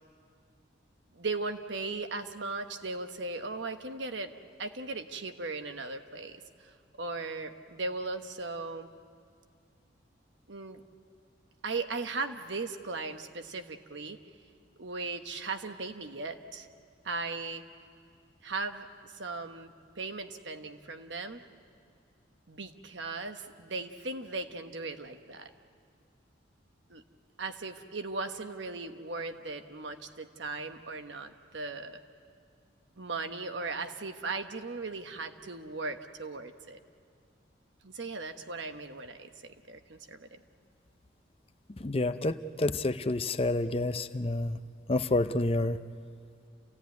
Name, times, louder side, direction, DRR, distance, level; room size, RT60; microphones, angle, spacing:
voice 1, 1.1-4.3 4.6-8.9 10.5-10.8 11.6-14.2 14.8-16.7 17.0-17.6 18.4-21.4 22.5-25.5 26.9-27.0 27.4-32.0 33.0-36.8 37.8-40.4, right 3 dB, 70° right, 7 dB, 1.2 m, -38 dB
voice 2, 41.8-44.6 44.9-45.8, left 2 dB, 30° left, 11 dB, 0.6 m, -29 dB
29.0 x 16.5 x 9.4 m, 2.3 s
head